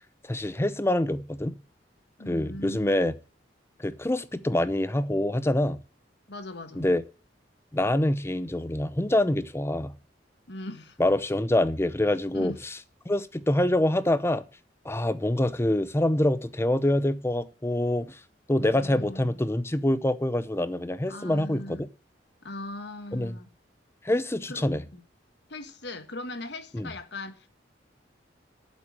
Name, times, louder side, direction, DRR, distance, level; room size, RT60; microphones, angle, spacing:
voice 1, 0.2-1.5 2.3-3.1 3.8-5.8 6.8-7.0 7.7-9.9 11.0-12.5 13.1-14.4 14.8-18.2 18.5-21.8 23.1-23.4 24.0-24.8 26.7-26.9, left 1 dB, 15° left, 0.7 m, -25 dB
voice 2, 2.2-3.1 6.3-6.9 10.5-11.0 12.3-12.6 18.6-19.5 21.1-21.9 22.4-23.5 24.5-25.0 25.5-27.5, left 2 dB, 65° left, 1.5 m, -39 dB
8.4 x 7.6 x 8.8 m
head